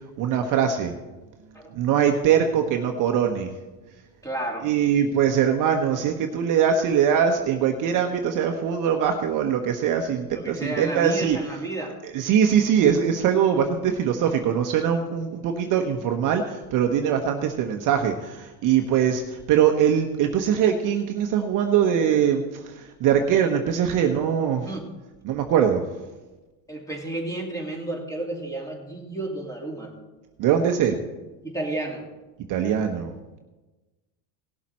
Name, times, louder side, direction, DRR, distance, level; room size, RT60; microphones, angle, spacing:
voice 1, 0.2-0.9 1.7-3.5 4.6-11.4 12.1-24.7 25.2-25.8 30.4-31.0 32.5-33.4, right 8 dB, 40° right, 4 dB, 1.0 m, -22 dB
voice 2, 4.2-4.7 10.3-12.0 24.7-24.9 26.7-29.9 31.4-32.1, right 2 dB, 5° left, 1 dB, 2.5 m, -31 dB
17.5 x 7.2 x 4.3 m, 1.1 s
supercardioid pair, 125°, 49 cm